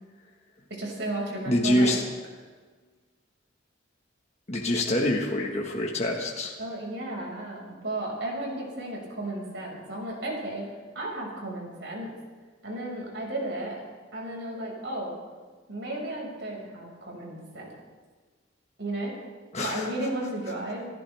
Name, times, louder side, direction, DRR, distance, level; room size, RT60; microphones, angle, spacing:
voice 1, 0.7-2.0 6.6-12.1 12.6-13.8 14.1-15.1 15.7-17.8 18.8-19.1 19.6-20.9, right 1 dB, 60° right, -1 dB, 5.6 m, -34 dB
voice 2, 1.5-2.0 4.5-6.5 19.5-19.9, left 1 dB, 35° left, -1 dB, 1.5 m, -25 dB
27.5 x 15.0 x 3.5 m, 1.5 s
head